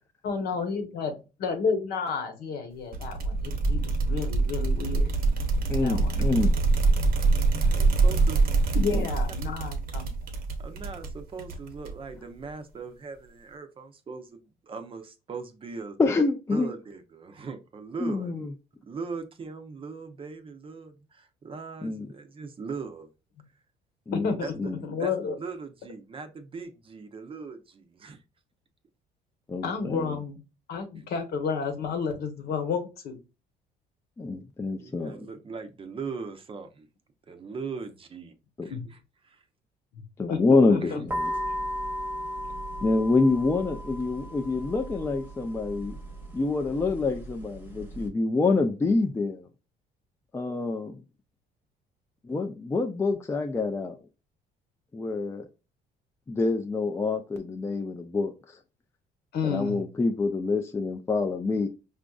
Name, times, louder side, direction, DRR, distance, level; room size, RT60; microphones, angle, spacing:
voice 1, 0.2-1.1 1.4-5.1 5.8-6.2 8.7-10.1 24.1-24.5 24.8-25.4 29.6-30.4 30.7-33.2 38.7-38.8 39.9-40.0 40.3-41.0 59.3-59.8, left 5 dB, 70° left, 1.0 m, -31 dB
sound 1, 2.9-12.2, right 3 dB, 60° right, 0.8 m, -25 dB
voice 2, 5.7-6.5 8.9-9.1 16.0-16.7 18.0-18.5 21.8-22.1 24.1-24.8 29.5-30.2 34.2-35.2 38.6-38.7 40.2-41.3 42.8-46.0 46.3-49.5 50.3-51.0 52.2-54.0 54.9-55.5 56.3-58.6 59.4-61.7, left 3 dB, 15° left, 0.4 m, -26 dB
voice 3, 7.5-8.4 10.6-16.0 16.5-18.5 18.8-23.1 24.4-24.7 25.0-25.1 25.4-28.2 31.0-31.1 34.8-36.9 37.3-38.3 38.6-39.0 39.2-39.4 40.8-40.9, right 4 dB, 30° right, 0.6 m, -39 dB
sound 2, 41.1-48.1, equal, 10° right, 0.9 m, -36 dB
5.0 x 2.5 x 2.3 m
cardioid pair, 110°, 17 cm